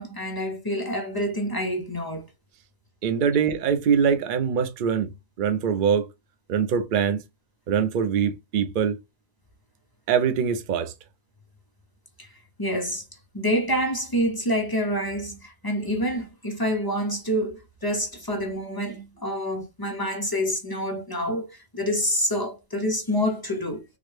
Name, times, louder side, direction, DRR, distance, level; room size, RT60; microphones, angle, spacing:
voice 1, 0.0-2.3 12.2-12.3 12.6-13.0 13.3-23.8, equal, 30° left, 0.4 m, -27 dB
voice 2, 3.0-5.1 5.4-6.1 6.5-7.2 7.7-9.0 10.1-10.9, right 7 dB, 50° right, 0.6 m, -23 dB
3.8 x 2.1 x 3.1 m
omnidirectional pair, 1.4 m